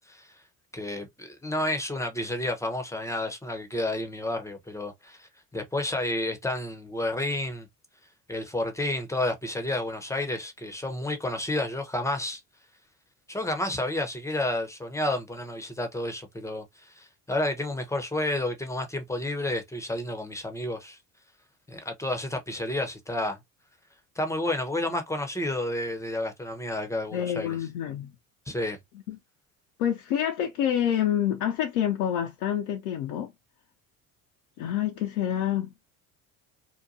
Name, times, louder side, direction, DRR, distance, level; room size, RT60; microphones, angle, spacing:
voice 1, 0.7-7.7 8.3-12.4 13.3-21.0 21.7-23.4 24.2-27.6 28.5-28.8, left 1 dB, 5° left, 0.7 m, -30 dB
voice 2, 27.1-28.1 29.1-29.2 29.8-33.3 34.6-35.7, left 10 dB, 75° left, 0.6 m, -27 dB
2.8 x 2.2 x 2.5 m
hypercardioid pair, 65°, 45 cm